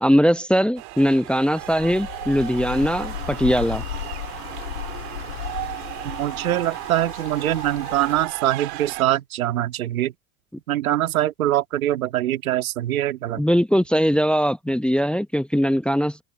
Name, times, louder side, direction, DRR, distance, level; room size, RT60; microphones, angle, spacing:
voice 1, 0.0-3.8 13.4-16.2, equal, ahead, 0.8 m, -20 dB
sound 1, 0.8-9.0, right 22 dB, 60° right, 2.7 m, -36 dB
sound 2, 1.6-8.3, left 13 dB, 90° left, 2.3 m, -35 dB
sound 3, 2.9-7.3, right 7 dB, 30° right, 4.7 m, -43 dB
voice 2, 6.0-10.1 10.7-13.4, right 13 dB, 85° right, 2.7 m, -23 dB
hypercardioid pair, 85°, 42 cm